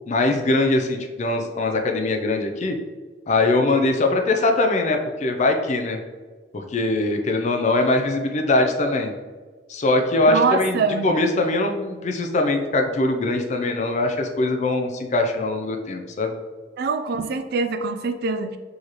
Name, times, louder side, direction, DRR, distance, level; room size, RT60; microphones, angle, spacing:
voice 1, 0.1-2.8 3.3-6.0 6.5-9.1 9.7-16.3, left 2 dB, 40° left, 4 dB, 0.4 m, -22 dB
voice 2, 10.3-11.1 16.8-18.6, right 4 dB, 55° right, 8 dB, 0.3 m, -24 dB
4.6 x 3.1 x 2.9 m, 1.4 s
head